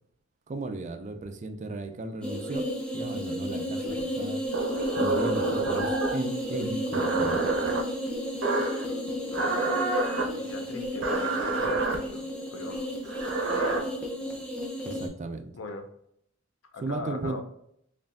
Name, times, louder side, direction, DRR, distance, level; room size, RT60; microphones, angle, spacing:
voice 1, 0.5-2.6 2.9-4.4 4.9-7.4 14.5-14.6 14.8-15.5 16.8-17.4, right 2 dB, 40° right, 8 dB, 0.4 m, -35 dB
sound 1, 2.2-15.1, left 1 dB, 5° left, 0.7 m, -33 dB
sound 2, 4.5-6.2 6.9-7.8 8.4-8.8 9.3-10.3 11.0-12.0 13.0-13.8, right 3 dB, 65° right, 0.8 m, -27 dB
voice 2, 8.9-9.7 10.1-12.3 12.5-12.9 13.4-13.9 15.5-15.9 16.7-17.4, left 2 dB, 75° left, 6 dB, 0.6 m, -40 dB
4.4 x 3.2 x 2.5 m, 0.72 s
head